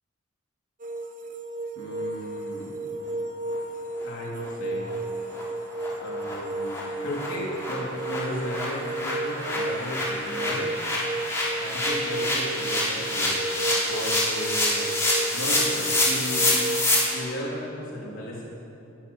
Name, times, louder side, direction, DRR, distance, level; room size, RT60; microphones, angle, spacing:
sound 1, 0.8-16.9, right 2 dB, 40° right, 1.1 m, -33 dB
voice 1, 1.8-2.8 4.0-4.8 6.0-10.7 11.6-13.4 13.9-14.9 15.3-16.5 17.1-18.4, equal, 70° left, -5 dB, 3.6 m, -35 dB
sound 2, 4.0-4.1 4.4-4.5 4.9-5.0 5.3-5.4 5.8-5.9 6.2-6.3 6.7-6.8 7.1-17.0, left 1 dB, 15° left, 4.6 m, -27 dB
19.0 x 13.0 x 5.7 m, 2.8 s
head